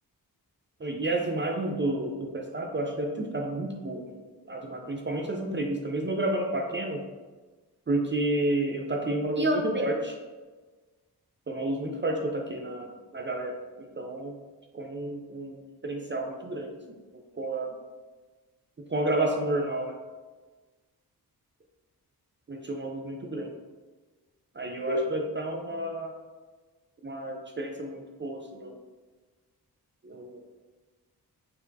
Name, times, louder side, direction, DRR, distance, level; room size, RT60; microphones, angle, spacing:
voice 1, 0.8-4.2 4.5-7.0 7.9-10.2 11.5-14.3 14.7-16.8 17.3-17.7 18.9-20.0 22.5-23.5 24.5-26.1 27.0-28.8 30.0-30.5, right 1 dB, 30° right, 2 dB, 0.5 m, -30 dB
5.1 x 3.4 x 2.7 m, 1.3 s
wide cardioid pair, 75°, 39 cm